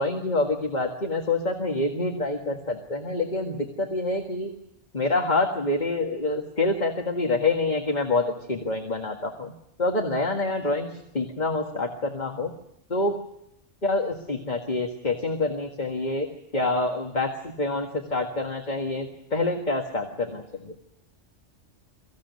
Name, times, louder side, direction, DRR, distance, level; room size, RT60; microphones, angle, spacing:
voice 1, 0.0-4.5 4.9-9.5 9.8-10.9 11.1-12.5 12.9-13.1 13.8-16.3 16.5-20.7, left 2 dB, 35° left, 3 dB, 1.9 m, -26 dB
23.5 x 16.0 x 9.5 m, 0.81 s
omnidirectional pair, 1.3 m